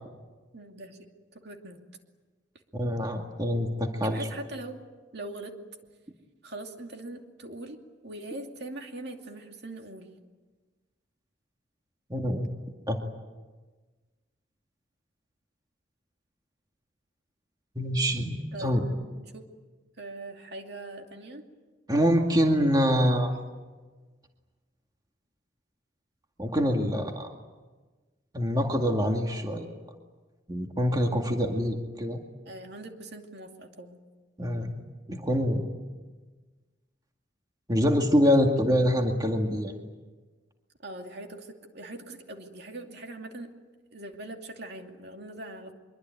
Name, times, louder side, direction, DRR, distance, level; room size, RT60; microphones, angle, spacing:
voice 1, 0.5-1.0 1.3-1.8 4.0-4.8 5.1-5.5 6.4-10.1 18.5-19.4 20.0-21.4 32.5-34.0 38.2-38.9 40.8-43.5 43.9-45.7, right 2 dB, 60° right, 3 dB, 2.6 m, -41 dB
voice 2, 2.8-4.3 12.1-12.5 12.9-13.0 17.8-18.8 21.9-23.3 26.4-27.3 28.3-29.7 30.5-32.2 34.4-34.8 35.1-35.6 37.7-39.7, equal, 20° right, 3 dB, 2.1 m, -25 dB
24.0 x 23.5 x 9.3 m, 1.3 s
head